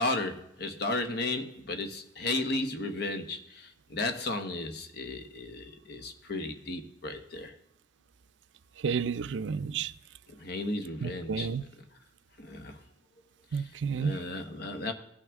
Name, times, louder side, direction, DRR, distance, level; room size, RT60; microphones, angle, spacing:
voice 1, 0.0-7.5 10.4-11.5 12.4-12.8 14.0-14.9, left 2 dB, 55° left, 1.2 m, -34 dB
voice 2, 8.8-9.9 11.0-11.6 13.5-14.2, right 6 dB, 70° right, 0.4 m, -31 dB
17.0 x 6.1 x 3.6 m
head